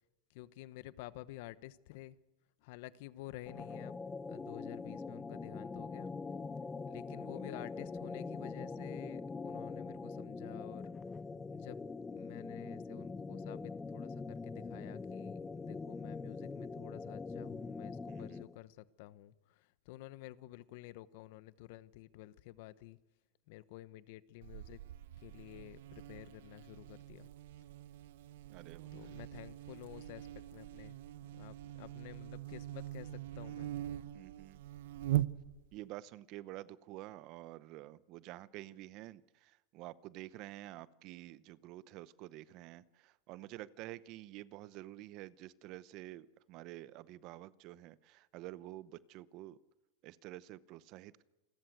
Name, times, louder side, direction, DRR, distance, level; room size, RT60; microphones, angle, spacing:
voice 1, 0.3-2.2 2.6-4.0 4.3-6.1 6.9-10.8 11.5-11.8 12.1-23.0 23.5-24.8 25.2-27.3 28.9-31.0 31.3-33.7, left 16 dB, 60° left, 16 dB, 1.0 m, -51 dB
sound 1, 3.5-18.6, left 4 dB, 15° left, 0.7 m, -43 dB
voice 2, 18.1-18.4 28.5-28.9 34.1-34.6 35.7-49.6 50.0-51.2, right 16 dB, 45° right, 18 dB, 0.8 m, -49 dB
Buzz, 24.4-35.8, right 14 dB, 75° right, 0.8 m, -42 dB
28.0 x 14.0 x 8.0 m, 1.1 s
supercardioid pair, 140°, 0 cm